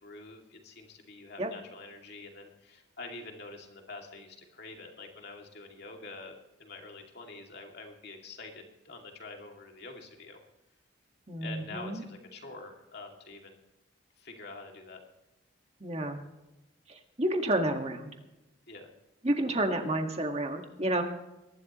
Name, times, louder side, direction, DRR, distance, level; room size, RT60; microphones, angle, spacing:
voice 1, 0.0-6.3 6.6-10.4 11.4-13.6 14.2-15.0 18.7-18.9, left 3 dB, 50° left, 2 dB, 2.6 m, -46 dB
voice 2, 11.3-12.0 15.8-16.2 16.9-18.1 19.2-21.0, right 1 dB, 30° right, 4 dB, 1.8 m, -30 dB
22.5 x 12.0 x 3.1 m, 0.98 s
head